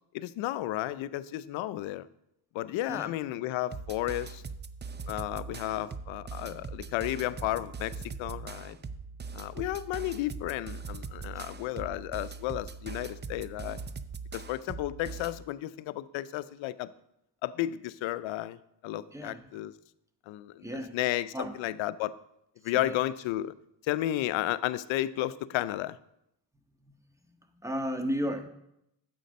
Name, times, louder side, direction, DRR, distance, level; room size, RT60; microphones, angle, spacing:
voice 1, 0.1-2.1 2.5-4.4 5.1-7.9 8.2-8.8 9.3-13.8 14.3-16.9 17.4-18.6 18.8-19.7 20.3-22.1 22.6-23.5 23.8-26.0, left 14 dB, 80° left, 16 dB, 0.6 m, -33 dB
sound 1, 3.7-15.4, right 4 dB, 25° right, 0.6 m, -41 dB
voice 2, 19.1-19.4 20.6-21.0 21.3-21.5 22.7-23.0 26.9-27.0 27.6-28.5, equal, 5° right, 6 dB, 1.4 m, -34 dB
9.0 x 7.7 x 5.3 m, 0.80 s
supercardioid pair, 60°, 46 cm